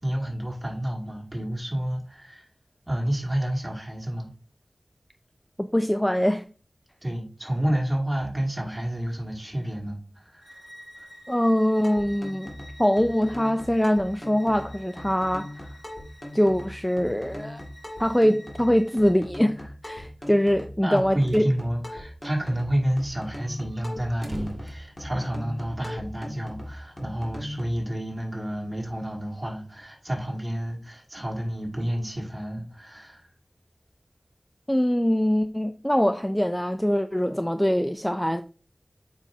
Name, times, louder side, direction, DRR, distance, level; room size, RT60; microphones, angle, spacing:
voice 1, 0.0-2.5 2.9-4.3 7.0-10.6 11.0-11.1 20.8-33.3, equal, 20° right, 2.4 m, -30 dB
voice 2, 5.6-6.4 11.3-12.5 12.8-15.7 16.3-17.6 18.0-21.5 34.7-38.4, equal, 10° left, 0.4 m, -23 dB
Bowed string instrument, 10.4-19.2, equal, 75° left, 2.5 m, -50 dB
sound 1, 11.8-27.8, left 1 dB, 30° left, 2.0 m, -40 dB
sound 2, 21.3-21.5 21.9-22.0 22.2-22.3 22.7-25.8, right 1 dB, 50° right, 1.4 m, -43 dB
7.3 x 5.5 x 2.7 m
wide cardioid pair, 60°, 0 cm